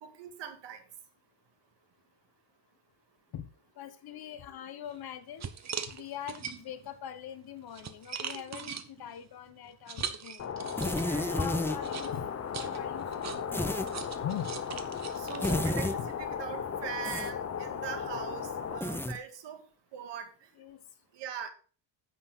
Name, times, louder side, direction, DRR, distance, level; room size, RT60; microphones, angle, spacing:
voice 1, 0.0-0.8 11.0-11.5 15.2-19.6 19.9-20.5 21.1-21.5, right 8 dB, 65° right, 2.2 m, -41 dB
voice 2, 3.8-5.5 5.9-10.4 11.3-13.7 13.9-14.5 16.0-16.1 20.6-20.8, left 9 dB, 55° left, 1.5 m, -42 dB
sound 1, 4.9-5.0 5.4-6.9 7.4-11.2 11.8-16.2, right 7 dB, 35° right, 1.1 m, -41 dB
sound 2, 10.4-18.8, left 7 dB, 30° left, 1.0 m, -36 dB
sound 3, 10.8-11.8 13.5-13.9 15.4-16.0 17.0-17.3 18.8-19.2, left 1 dB, 5° left, 0.8 m, -31 dB
10.0 x 8.0 x 3.9 m
cardioid pair, 150°, 46 cm